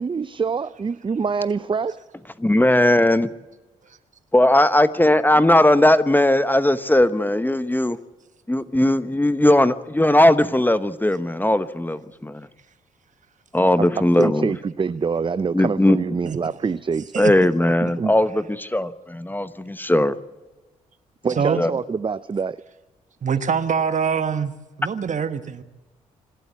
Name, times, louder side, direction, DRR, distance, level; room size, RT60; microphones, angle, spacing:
voice 1, 0.0-2.0 13.8-17.1 18.0-18.1 21.2-22.6, right 5 dB, 30° right, 15 dB, 0.6 m, -25 dB
voice 2, 2.4-3.3 4.3-8.0 8.5-12.4 13.5-14.5 15.5-16.0 17.2-20.1 21.6-21.7, left 1 dB, 10° left, 13 dB, 1.0 m, -18 dB
voice 3, 23.2-24.5 24.8-25.6, right 6 dB, 45° right, 11 dB, 1.3 m, -23 dB
26.5 x 12.5 x 8.3 m, 1.1 s
hypercardioid pair, 40°, 17 cm